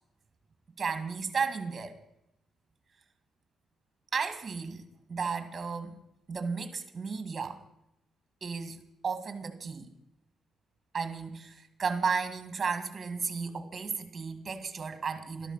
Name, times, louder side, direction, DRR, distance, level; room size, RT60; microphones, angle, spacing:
voice 1, 0.8-2.0 4.1-6.0 6.3-7.6 8.4-9.9 10.9-15.5, right 5 dB, 40° right, 9 dB, 2.1 m, -34 dB
13.0 x 12.5 x 5.8 m, 0.83 s
cardioid pair, 90°, 0 cm